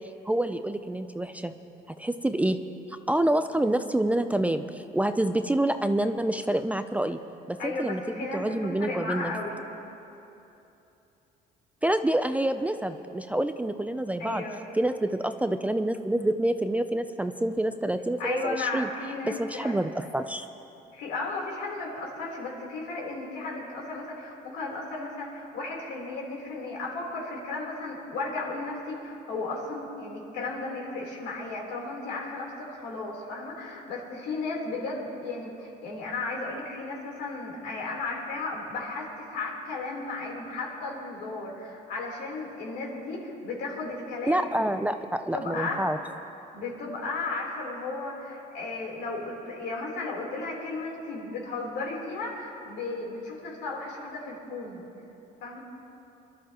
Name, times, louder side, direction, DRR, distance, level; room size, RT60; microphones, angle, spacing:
voice 1, 0.3-1.5 1.9-2.6 2.9-7.2 7.5-9.3 11.8-14.4 14.7-18.9 19.2-20.5 44.3-46.0, right 1 dB, 10° right, 9 dB, 0.4 m, -27 dB
voice 2, 7.6-9.6 14.2-14.6 18.2-19.7 20.9-44.7 45.3-45.8 46.5-54.9 55.4-55.6, left 3 dB, 80° left, -2 dB, 3.5 m, -34 dB
25.5 x 12.5 x 2.9 m, 2.9 s
cardioid pair, 110°, 17 cm